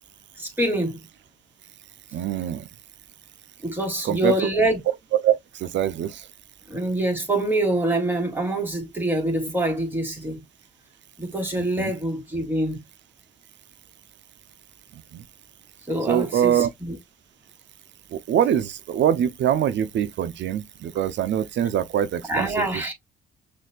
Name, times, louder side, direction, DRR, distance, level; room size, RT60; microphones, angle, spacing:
voice 1, 0.4-1.0 3.6-4.8 6.7-10.4 11.2-12.8 15.9-17.0 22.3-22.9, right 1 dB, 10° right, 2.2 m, -25 dB
voice 2, 2.1-2.6 4.0-4.3 5.1-5.3 5.6-6.2 11.6-11.9 16.1-16.7 18.1-22.7, right 10 dB, 65° right, 0.6 m, -23 dB
6.3 x 2.7 x 2.2 m
cardioid pair, 90°, 20 cm